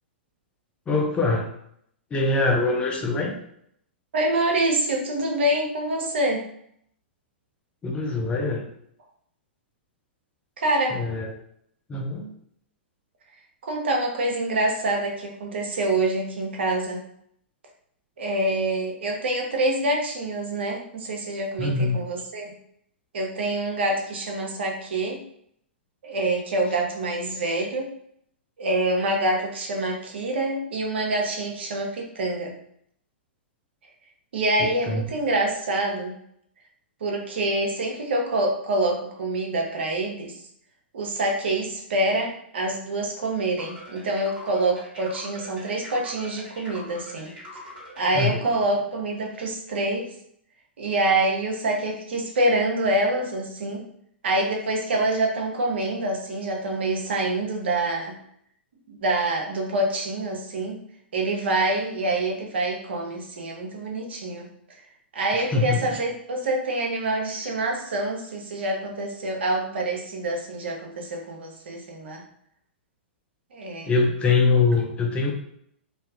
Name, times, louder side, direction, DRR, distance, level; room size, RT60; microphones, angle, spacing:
voice 1, 0.9-1.5 2.1-3.3 7.8-8.7 10.9-11.3 11.9-12.3 21.6-22.0 34.6-35.0 48.1-48.5 65.3-65.9 73.9-75.3, left 3 dB, 20° left, 1 dB, 0.5 m, -23 dB
voice 2, 4.1-6.4 10.6-11.0 13.6-17.0 18.2-22.5 23.1-25.2 26.0-27.9 28.6-32.5 34.3-36.2 37.0-40.4 40.9-50.1 50.8-53.8 54.2-58.1 58.9-60.8 61.1-64.5 65.1-72.2 73.5-73.9, right 2 dB, 75° right, 1 dB, 0.6 m, -26 dB
sound 1, 43.6-48.2, left 1 dB, 25° right, 1.5 m, -43 dB
2.6 x 2.3 x 2.4 m, 0.70 s
hypercardioid pair, 120°, 6 cm